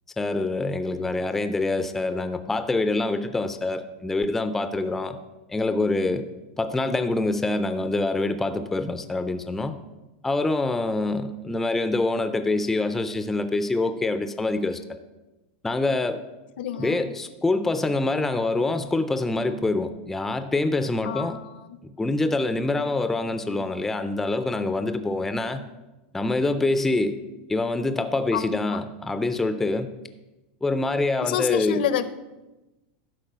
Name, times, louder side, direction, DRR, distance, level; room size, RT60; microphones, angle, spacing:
voice 1, 0.2-5.2 5.5-6.3 6.6-9.8 10.2-15.0 15.6-16.2 16.8-21.4 21.8-25.6 26.1-27.2 27.5-29.9 30.6-31.8, left 2 dB, 5° left, 10 dB, 0.3 m, -25 dB
voice 2, 16.6-17.0 21.0-21.7 28.3-28.8 31.2-32.0, left 10 dB, 80° left, 13 dB, 0.7 m, -28 dB
11.5 x 4.5 x 6.6 m, 1.0 s
supercardioid pair, 175°, 5 cm